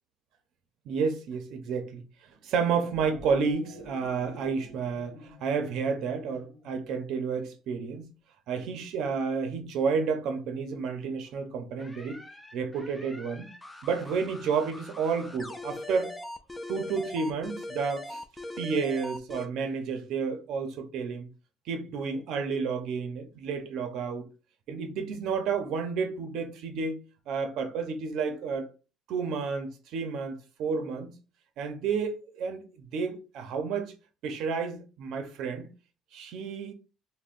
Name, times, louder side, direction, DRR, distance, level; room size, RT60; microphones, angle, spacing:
voice 1, 0.9-2.0 2.4-8.1 8.5-12.2 12.5-13.5 13.8-16.1 16.7-18.2 18.6-21.3 21.7-24.2 24.7-28.7 29.1-31.1 31.6-32.6 32.9-33.9 34.2-35.7 36.1-36.7, right 5 dB, 65° right, 0.6 m, -31 dB
sound 1, 2.6-7.1, left 2 dB, 75° left, 1.0 m, -49 dB
sound 2, 11.8-19.5, left 1 dB, 5° left, 0.3 m, -41 dB
5.4 x 2.1 x 2.5 m
cardioid pair, 170°, 0 cm